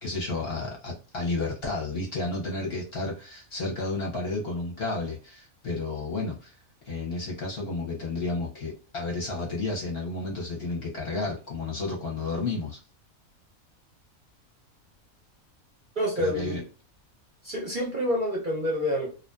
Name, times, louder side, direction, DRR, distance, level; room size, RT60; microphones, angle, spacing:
voice 1, 0.0-6.5 6.8-12.8 16.2-16.6, left 3 dB, 55° left, -1 dB, 0.8 m, -32 dB
voice 2, 16.0-16.7 17.4-19.1, equal, 50° right, -2 dB, 0.6 m, -28 dB
2.5 x 2.3 x 2.2 m, 0.35 s
omnidirectional pair, 1.5 m